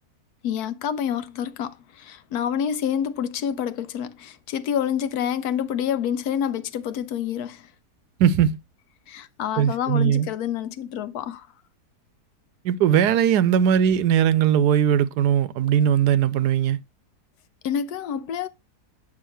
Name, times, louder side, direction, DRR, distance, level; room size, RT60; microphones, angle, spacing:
voice 1, 0.4-7.7 9.1-11.5 17.6-18.5, left 9 dB, 75° left, 1.1 m, -28 dB
voice 2, 8.2-8.6 9.6-10.3 12.6-16.8, right 9 dB, 80° right, 1.2 m, -19 dB
8.6 x 5.6 x 3.0 m
omnidirectional pair, 1.7 m